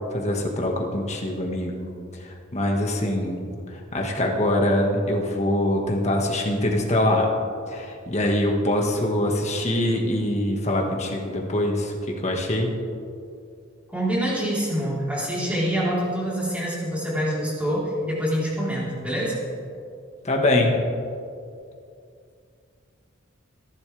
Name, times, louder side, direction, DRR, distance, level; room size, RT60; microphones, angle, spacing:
voice 1, 0.1-7.3 7.7-12.7 20.2-20.8, left 1 dB, 35° left, 1 dB, 1.8 m, -24 dB
voice 2, 13.9-19.3, equal, 5° right, -7 dB, 4.1 m, -26 dB
26.0 x 11.5 x 3.5 m, 2.4 s
head